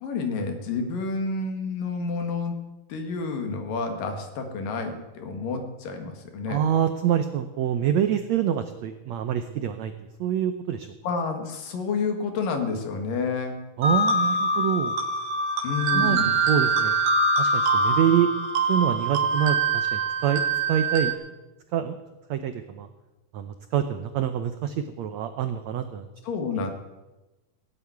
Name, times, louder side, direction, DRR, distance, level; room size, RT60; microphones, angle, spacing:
voice 1, 0.0-2.5 2.9-6.6 11.0-13.6 15.6-16.3 26.2-26.7, left 4 dB, 70° left, 5 dB, 3.4 m, -29 dB
voice 2, 6.5-9.9 10.2-10.9 13.8-14.9 15.9-17.0 17.4-18.3 18.7-21.1 21.7-22.0 22.3-22.9 23.3-26.1, right 9 dB, 85° right, 9 dB, 1.5 m, -26 dB
sound 1, 13.8-21.1, right 2 dB, 55° right, 2.8 m, -24 dB
17.5 x 8.4 x 9.5 m, 1.1 s
omnidirectional pair, 4.2 m